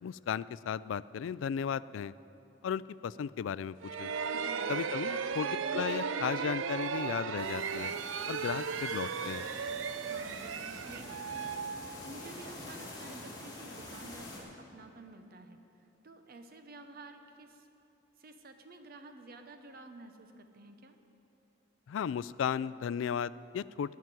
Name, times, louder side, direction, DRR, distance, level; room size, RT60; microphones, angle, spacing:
voice 1, 0.0-2.1 2.6-4.1 4.7-7.9 8.3-9.5 21.9-23.9, left 7 dB, 80° left, 19 dB, 0.3 m, -35 dB
sound 1, 3.8-12.5, right 6 dB, 85° right, 0.5 m, -36 dB
voice 2, 4.3-4.7 10.1-11.6 11.9-15.6 16.0-17.7 18.2-21.0, right 2 dB, 50° right, 7 dB, 0.8 m, -51 dB
sound 2, 7.4-14.4, left 1 dB, 20° left, 3.1 m, -47 dB
16.5 x 5.9 x 9.6 m, 2.9 s
head